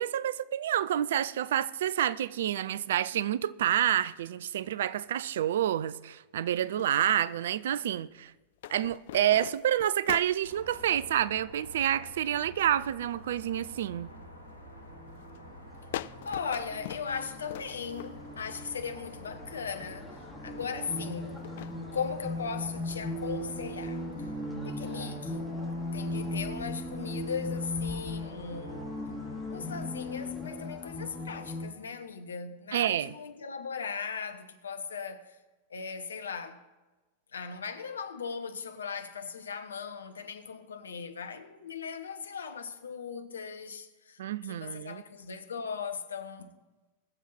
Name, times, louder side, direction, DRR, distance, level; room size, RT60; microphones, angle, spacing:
voice 1, 0.0-8.3 8.7-14.1 32.7-33.1 44.2-45.0, right 11 dB, 60° right, 0.4 m, -28 dB
sound 1, 6.8-7.7 8.6-10.6 12.7-13.4 13.8-14.2 14.8-15.0 15.4-15.5 15.9-18.4 19.2-19.3 21.1-21.8, left 14 dB, 55° left, 0.3 m, -42 dB
sound 2, 10.4-30.3, equal, 85° right, 2.2 m, -49 dB
sound 3, 14.9-31.7, left 1 dB, ahead, 3.0 m, -38 dB
voice 2, 16.2-21.4 21.9-24.3 24.6-25.5 25.9-28.9 29.5-35.4 35.7-36.6 37.3-46.5, left 6 dB, 70° left, 1.0 m, -38 dB
20.5 x 7.3 x 4.3 m
figure-of-eight pair, 90°, 0 cm